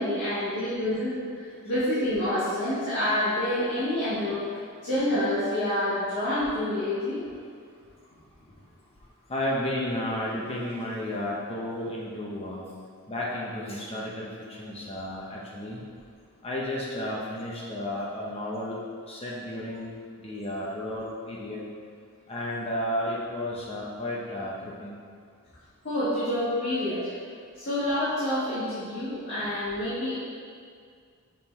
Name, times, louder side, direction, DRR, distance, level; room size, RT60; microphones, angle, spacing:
voice 1, 0.0-4.4 4.8-7.2 25.8-27.1 27.5-30.2, left 1 dB, 50° left, -12 dB, 1.5 m, -28 dB
voice 2, 9.3-12.7 13.1-15.8 16.4-18.8 19.1-19.9 20.2-21.6 22.3-25.0, left 1 dB, 25° left, -4 dB, 0.7 m, -32 dB
6.2 x 3.8 x 4.3 m, 2.1 s
head